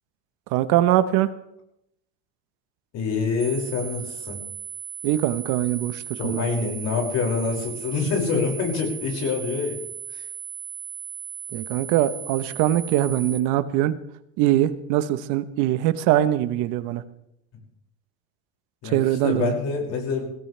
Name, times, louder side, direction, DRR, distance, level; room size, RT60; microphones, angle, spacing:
voice 1, 0.5-1.3 5.0-6.4 11.5-13.9 14.4-17.0 18.8-19.5, right 13 dB, 65° right, 12 dB, 1.1 m, -22 dB
voice 2, 2.9-4.4 6.1-9.8 10.1-10.2 18.8-20.3, left 5 dB, 50° left, 1 dB, 6.0 m, -26 dB
sound 1, 3.4-13.4, right 9 dB, 20° right, 2.3 m, -37 dB
21.0 x 16.5 x 3.4 m, 0.79 s
supercardioid pair, 120°, 33 cm